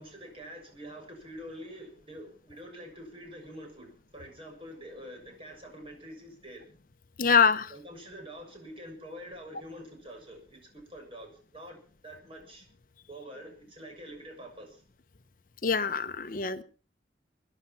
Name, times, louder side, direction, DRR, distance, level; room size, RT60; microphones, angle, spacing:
voice 1, 0.0-6.6 7.7-11.8 12.0-12.7 13.1-14.8, equal, 30° right, 2 dB, 6.9 m, -46 dB
voice 2, 7.2-7.7 15.6-16.6, left 6 dB, 50° left, 11 dB, 0.7 m, -24 dB
22.0 x 11.0 x 5.7 m, 0.38 s
head